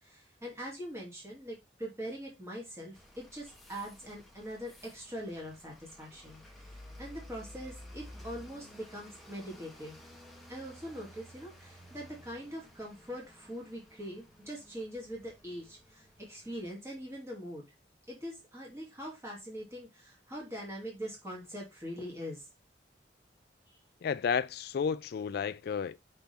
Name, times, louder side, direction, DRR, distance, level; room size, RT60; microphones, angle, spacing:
voice 1, 0.0-10.0 10.5-17.6 18.1-22.4, equal, 15° right, 2.5 m, -43 dB
sound 1, 2.9-16.7, left 1 dB, ahead, 1.3 m, -53 dB
voice 2, 24.0-26.0, left 6 dB, 55° left, 0.3 m, -32 dB
5.8 x 5.7 x 3.5 m
head